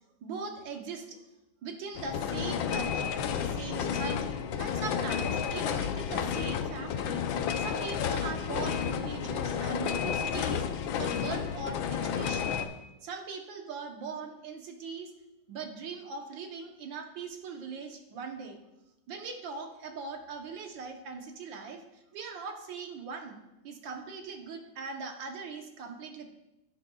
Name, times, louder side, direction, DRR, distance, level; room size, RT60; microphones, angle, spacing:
voice 1, 0.2-1.2 1.6-10.6 11.0-12.6 13.0-15.1 15.5-18.6 19.1-23.4 23.6-26.3, right 5 dB, 75° right, 4 dB, 1.7 m, -40 dB
sound 1, 2.0-12.7, left 8 dB, 80° left, 1.4 m, -31 dB
10.5 x 10.5 x 2.3 m, 0.95 s
omnidirectional pair, 2.1 m